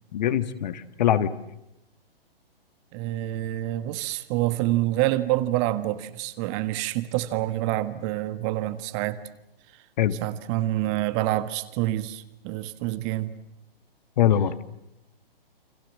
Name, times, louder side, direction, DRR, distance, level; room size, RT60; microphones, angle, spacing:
voice 1, 0.1-1.3 10.0-10.1 14.2-14.5, left 10 dB, 45° left, 1.7 m, -22 dB
voice 2, 2.9-9.2 10.2-13.3, right 15 dB, 30° right, 1.5 m, -27 dB
29.5 x 25.5 x 7.5 m
figure-of-eight pair, 120°, 30 cm